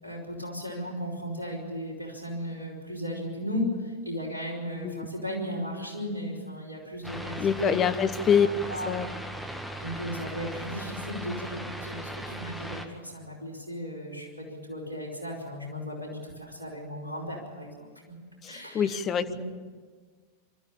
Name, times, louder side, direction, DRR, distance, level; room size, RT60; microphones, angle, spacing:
voice 1, 0.0-7.8 8.4-9.0 9.8-18.1 18.5-19.0 19.3-19.4, equal, 85° right, 0 dB, 4.9 m, -36 dB
sound 1, 7.0-12.9, right 1 dB, ahead, 1.8 m, -38 dB
voice 2, 7.4-8.5 8.9-9.1 18.4-19.3, left 8 dB, 25° left, 11 dB, 1.0 m, -25 dB
24.5 x 13.5 x 8.5 m, 1.5 s
figure-of-eight pair, 90°, 0 cm